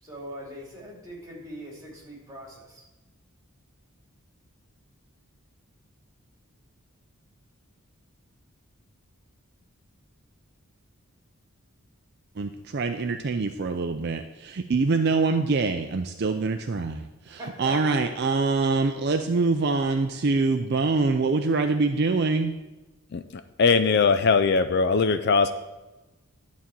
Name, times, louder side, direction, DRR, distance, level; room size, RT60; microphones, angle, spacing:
voice 1, 0.0-2.8 17.2-18.0, equal, 15° right, -3 dB, 2.8 m, -41 dB
voice 2, 12.4-22.5, right 3 dB, 50° right, 7 dB, 0.4 m, -25 dB
voice 3, 23.6-25.5, left 4 dB, 50° left, 11 dB, 0.4 m, -20 dB
11.0 x 4.2 x 7.5 m, 1.1 s
head